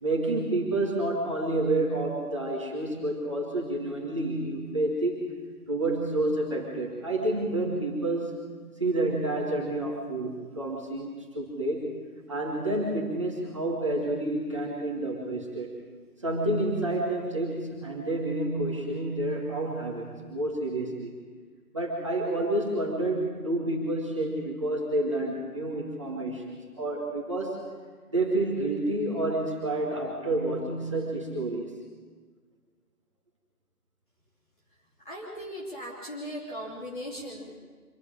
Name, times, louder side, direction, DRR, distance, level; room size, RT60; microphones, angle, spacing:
voice 1, 0.0-5.3 5.7-8.4 8.8-12.0 12.3-15.8 16.2-21.1 21.7-27.6 28.1-31.7, right 2 dB, 20° right, -3 dB, 1.9 m, -29 dB
voice 2, 35.0-37.6, equal, 30° left, -5 dB, 3.3 m, -38 dB
25.5 x 13.5 x 8.9 m, 1.5 s
figure-of-eight pair, 170°, 46 cm